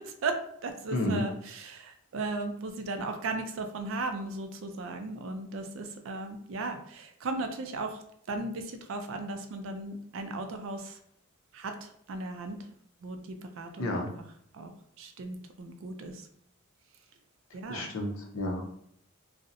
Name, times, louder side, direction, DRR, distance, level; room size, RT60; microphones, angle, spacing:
voice 1, 0.0-8.0 8.3-11.0 11.5-12.6 13.0-14.1 14.5-14.7 15.0-16.2 17.5-17.9, right 3 dB, 60° right, 6 dB, 0.3 m, -36 dB
voice 2, 0.9-1.3 13.8-14.1 17.7-18.6, left 1 dB, 65° left, 1 dB, 0.6 m, -31 dB
2.6 x 2.0 x 2.6 m, 0.68 s
head